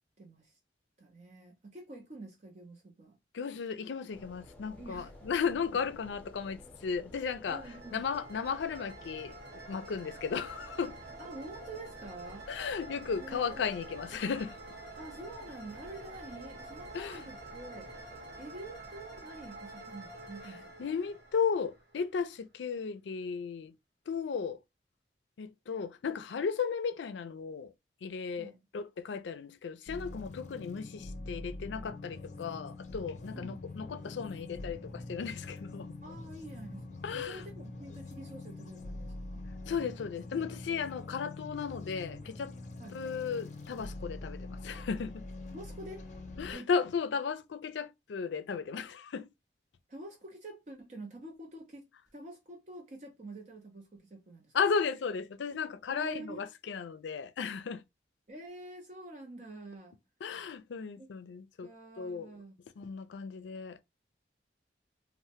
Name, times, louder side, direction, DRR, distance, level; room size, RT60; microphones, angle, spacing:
voice 1, 0.2-0.6 1.0-3.2 4.8-5.1 7.5-8.0 11.2-12.5 13.2-13.6 15.0-17.9 18.4-20.7 28.4-28.6 33.3-33.6 36.0-39.5 42.8-43.0 45.5-46.1 46.5-46.7 49.9-51.9 52.1-54.5 55.9-56.5 58.3-60.0 61.0-61.1 61.6-62.6, right 2 dB, 40° right, 0.5 m, -47 dB
voice 2, 3.3-7.6 7.9-9.3 9.7-11.0 12.5-14.6 16.9-17.2 20.8-23.7 24.1-24.6 25.4-27.7 28.0-36.0 37.0-37.4 39.6-42.5 42.9-45.2 46.4-49.3 54.5-57.8 60.2-61.7 62.0-62.3 62.8-63.8, left 6 dB, 90° left, 0.4 m, -35 dB
sound 1, 4.1-22.0, left 1 dB, 5° left, 0.7 m, -54 dB
sound 2, 7.4-22.2, right 2 dB, 65° right, 1.0 m, -49 dB
sound 3, 29.9-46.6, left 2 dB, 40° left, 0.6 m, -44 dB
3.2 x 2.1 x 2.8 m
head